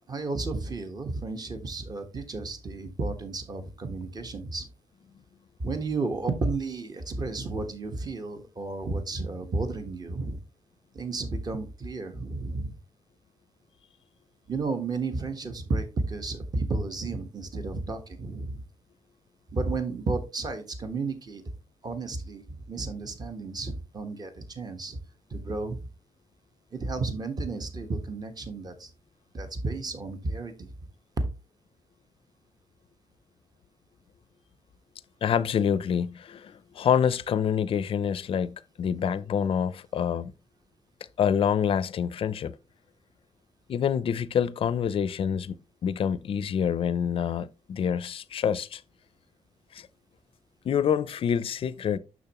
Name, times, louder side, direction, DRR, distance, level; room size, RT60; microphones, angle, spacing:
voice 1, 0.1-4.7 5.6-10.4 10.9-12.8 14.5-18.6 19.5-21.4 21.8-25.0 25.3-25.8 26.7-28.9 29.3-30.7, right 3 dB, 35° right, 1.2 m, -32 dB
voice 2, 35.2-40.3 41.2-42.5 43.7-48.8 49.7-49.9 50.6-52.0, left 8 dB, 55° left, 0.4 m, -27 dB
6.8 x 6.3 x 2.9 m
cardioid pair, 115°, 12 cm